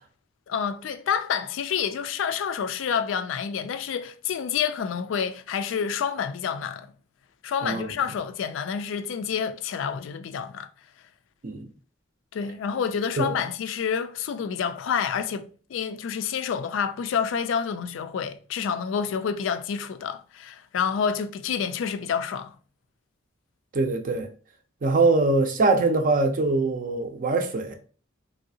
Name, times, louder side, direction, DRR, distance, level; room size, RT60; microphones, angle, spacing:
voice 1, 0.5-6.9 7.4-10.7 12.3-22.6, left 7 dB, 70° left, 0.3 m, -28 dB
voice 2, 7.6-7.9 11.4-11.7 13.2-13.3 23.7-24.3 24.8-27.7, right 3 dB, 45° right, 0.5 m, -23 dB
3.1 x 2.7 x 2.7 m
head